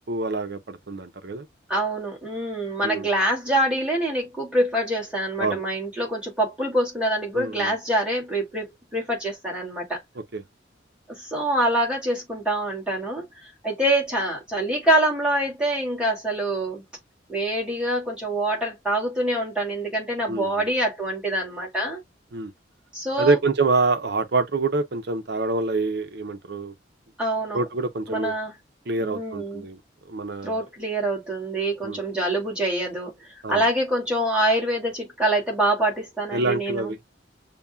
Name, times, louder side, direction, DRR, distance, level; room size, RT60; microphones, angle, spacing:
voice 1, 0.1-1.5 2.8-3.1 5.4-5.6 7.4-7.7 10.3-10.4 20.3-20.5 22.3-22.5 23.2-26.7 27.5-28.3 28.9-29.8 30.1-30.6 31.8-32.0 33.4-33.6 36.3-37.0, right 3 dB, 55° right, 0.7 m, -26 dB
voice 2, 1.7-10.0 11.1-16.8 17.3-22.0 22.9-23.4 27.2-27.6 28.1-28.6 29.0-29.7 30.4-36.9, right 1 dB, 5° right, 2.0 m, -25 dB
6.9 x 2.3 x 2.2 m
head